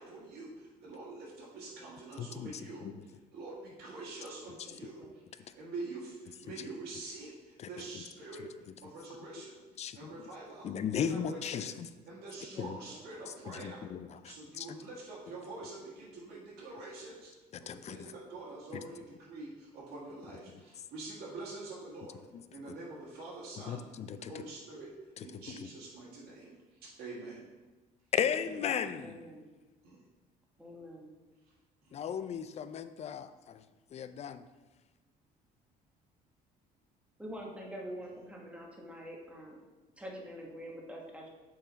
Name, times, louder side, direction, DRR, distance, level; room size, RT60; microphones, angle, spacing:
voice 1, 0.0-8.4 8.8-9.6 9.9-11.7 12.1-13.9 14.2-17.3 17.6-22.2 22.5-23.8 24.2-24.9 25.2-27.4 29.8-30.0 31.8-32.0, right 2 dB, 75° right, -6 dB, 1.6 m, -46 dB
voice 2, 2.2-2.9 7.6-7.7 8.4-8.5 9.8-10.1 10.6-11.9 12.6-12.8 13.5-14.7 17.5-18.1 22.3-22.4 23.7-24.3 25.5-25.6 28.2-29.2 31.9-33.6 33.9-34.4, left 8 dB, 40° left, 12 dB, 0.4 m, -36 dB
voice 3, 4.6-5.2 12.5-13.1 28.2-28.3 28.6-29.5 30.6-31.1 37.2-39.6 40.0-41.3, equal, 5° right, -1 dB, 1.2 m, -46 dB
6.4 x 4.1 x 4.0 m, 1.2 s
cardioid pair, 110°, 17 cm